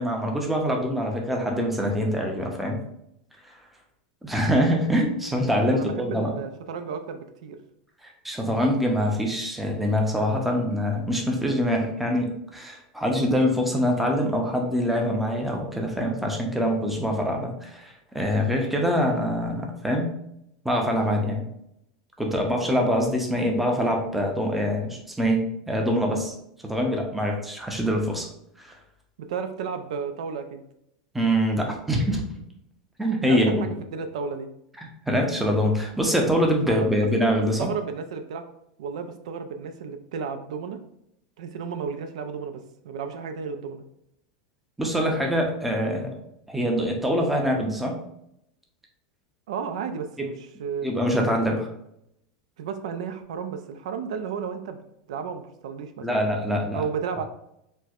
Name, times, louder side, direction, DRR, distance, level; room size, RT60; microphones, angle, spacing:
voice 1, 0.0-2.8 3.4-3.6 4.2-6.4 8.0-20.1 20.6-21.5 22.2-26.3 26.6-28.3 28.6-28.7 31.1-32.2 33.0-33.7 35.1-37.7 44.8-46.1 46.5-48.0 50.8-51.6 56.0-56.8, equal, 5° right, 1 dB, 0.5 m, -24 dB
voice 2, 5.7-7.6 29.2-30.6 33.2-34.5 36.7-36.9 37.6-38.4 38.8-40.8 41.4-43.8 49.5-50.9 52.6-54.8 55.1-56.3 56.7-57.2, right 6 dB, 85° right, 7 dB, 0.4 m, -33 dB
4.3 x 2.1 x 2.4 m, 0.77 s
supercardioid pair, 145°, 3 cm